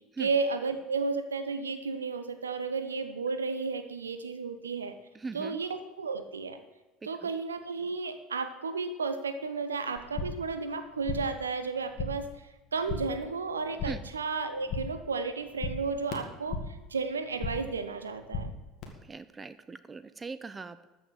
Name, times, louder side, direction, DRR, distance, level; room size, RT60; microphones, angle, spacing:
voice 1, 0.2-4.9 5.3-6.6 7.0-12.3 12.7-18.5, right 4 dB, 80° right, 10 dB, 0.9 m, -33 dB
voice 2, 5.2-5.6 13.9-14.0 19.1-20.9, right 4 dB, 20° right, 14 dB, 0.7 m, -40 dB
sound 1, 10.0-10.5 10.8-11.4 11.7-12.3 12.6-13.2 13.5-14.2 14.4-15.1 15.3-16.8 17.1-17.8 18.0-18.8, left 4 dB, 45° left, 2.2 m, -37 dB
13.5 x 6.3 x 7.7 m, 1.1 s
figure-of-eight pair, 65°, 0 cm